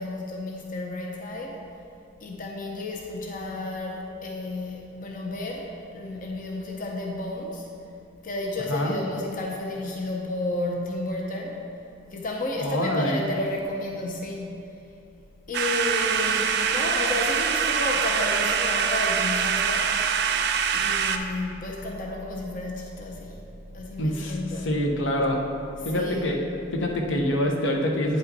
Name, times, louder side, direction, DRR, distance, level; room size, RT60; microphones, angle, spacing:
voice 1, 0.0-1.6 2.2-7.6 8.2-11.6 12.1-14.6 15.5-20.0 20.7-24.7 25.8-26.3, left 2 dB, 45° left, 0 dB, 0.6 m, -32 dB
voice 2, 12.6-13.2 24.0-25.4 25.8-26.4 26.7-28.2, left 1 dB, 80° left, 1 dB, 0.9 m, -25 dB
sound 1, 15.5-21.2, right 7 dB, 60° right, 0.4 m, -24 dB
9.0 x 5.5 x 4.1 m, 2.7 s
head